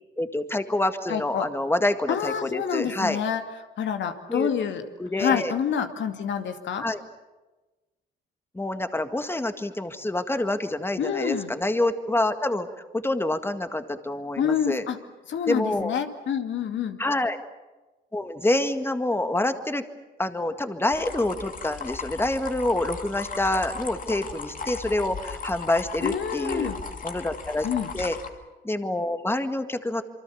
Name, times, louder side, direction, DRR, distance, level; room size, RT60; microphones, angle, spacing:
voice 1, 0.2-3.2 4.3-4.5 5.0-5.5 6.8-7.0 8.6-12.7 13.0-14.8 15.5-15.9 17.0-17.4 18.1-19.8 20.2-26.7 27.0-27.7 27.9-28.2 28.6-30.0, left 1 dB, 10° left, 8 dB, 1.9 m, -27 dB
voice 2, 1.1-1.5 2.1-3.4 3.8-4.8 5.2-6.9 11.0-11.5 14.4-15.0 15.3-17.0 26.0-26.8 27.6-27.9, left 8 dB, 70° left, 6 dB, 2.4 m, -27 dB
sound 1, 20.9-28.3, left 5 dB, 45° left, 2.5 m, -36 dB
27.0 x 24.5 x 7.2 m, 1.2 s
cardioid pair, 90°, 20 cm